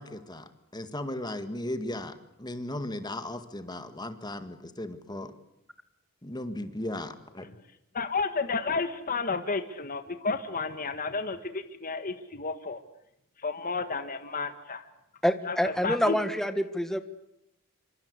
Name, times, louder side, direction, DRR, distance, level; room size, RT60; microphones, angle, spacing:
voice 1, 0.0-5.3 6.2-7.5, left 1 dB, 20° left, 10 dB, 1.9 m, -36 dB
voice 2, 7.9-12.8 13.4-14.8 15.4-15.6 15.8-16.2, left 4 dB, 40° left, 9 dB, 1.6 m, -31 dB
voice 3, 15.2-17.0, equal, ahead, 9 dB, 1.5 m, -26 dB
26.5 x 25.5 x 8.2 m, 0.80 s
head